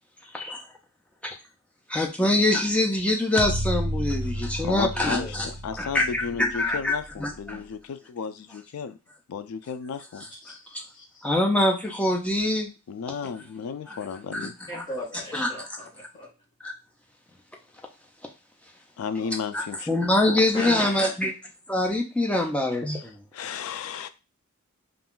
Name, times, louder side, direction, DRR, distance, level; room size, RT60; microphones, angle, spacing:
voice 1, 1.9-5.5 5.8-7.6 10.7-10.8 11.2-12.7 13.9-14.0 14.3-14.8 15.3-15.5 16.6-16.7 19.5-21.3 21.7-23.2, left 1 dB, 5° left, 0 dB, 0.5 m, -24 dB
sound 1, 3.4-7.5, equal, 50° right, 0.6 m, -32 dB
voice 2, 4.6-9.0 9.3-10.2 12.9-14.5 19.0-20.5 23.3-24.1, left 6 dB, 75° left, 11 dB, 0.3 m, -34 dB
voice 3, 10.9-11.3 14.7-15.9 16.1-16.3 19.2-19.3 20.5-21.1, left 1 dB, 20° left, -7 dB, 1.0 m, -37 dB
2.4 x 2.3 x 3.6 m, 0.29 s
head